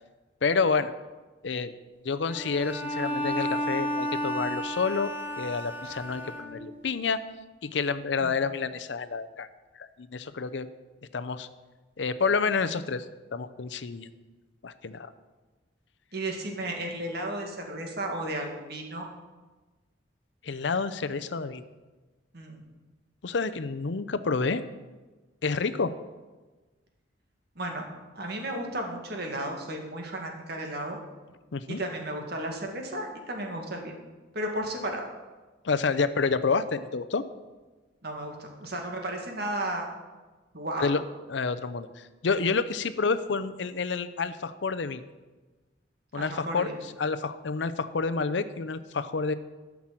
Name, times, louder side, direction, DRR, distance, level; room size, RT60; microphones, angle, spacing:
voice 1, 0.4-0.9 1.4-1.7 2.0-7.2 7.6-9.5 9.8-10.7 11.1-11.5 12.0-13.1 13.3-14.1 14.6-15.1 20.4-21.6 23.2-24.6 25.4-25.9 31.5-31.8 35.6-37.2 40.8-41.0 41.3-45.0 46.1-46.7 47.0-49.3, left 4 dB, 70° left, 11 dB, 0.6 m, -29 dB
Bowed string instrument, 2.3-6.9, equal, 10° right, 1.6 m, -32 dB
voice 2, 16.1-19.1 22.3-22.6 27.6-27.8 28.1-31.0 31.7-33.9 34.3-35.1 38.0-39.9 40.5-41.0 46.1-46.7, right 1 dB, 60° right, 2 dB, 2.0 m, -34 dB
13.0 x 6.0 x 7.5 m, 1.2 s
head